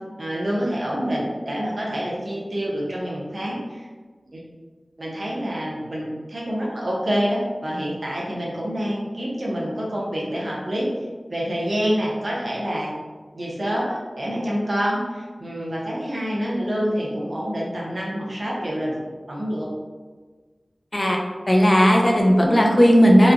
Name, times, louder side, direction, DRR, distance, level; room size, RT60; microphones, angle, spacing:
voice 1, 0.2-3.9 4.3-4.4 5.0-10.9 11.3-12.9 13.3-19.7, equal, 60° right, -5 dB, 0.7 m, -27 dB
voice 2, 21.5-23.3, equal, 35° left, 0 dB, 0.5 m, -15 dB
3.0 x 2.3 x 2.5 m, 1.4 s
wide cardioid pair, 55°, 0 cm